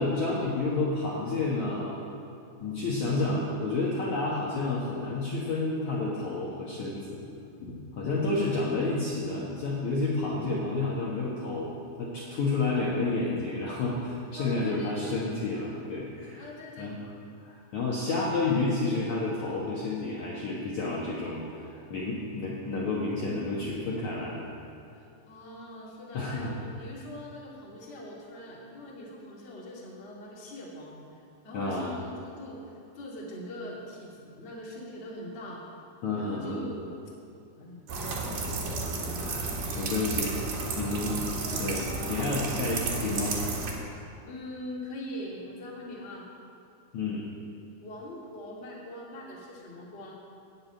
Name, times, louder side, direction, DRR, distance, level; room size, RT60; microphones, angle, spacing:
voice 1, 0.0-2.0 2.6-7.2 7.6-16.5 16.8-17.0 17.4-24.5 26.1-26.6 31.5-32.0 36.0-36.7 39.2-39.5 39.8-40.3 40.8-43.4 46.9-47.2, left 3 dB, 60° left, -6 dB, 2.0 m, -30 dB
voice 2, 14.3-15.1 16.4-17.0 24.9-31.0 31.4-35.6 36.1-36.9 37.5-38.8 39.6-40.3 44.2-46.2 47.8-50.2, left 1 dB, 25° left, -4 dB, 1.3 m, -42 dB
sound 1, 37.9-43.7, right 3 dB, 60° right, 2.8 m, -32 dB
14.5 x 6.4 x 9.1 m, 2.5 s
omnidirectional pair, 5.3 m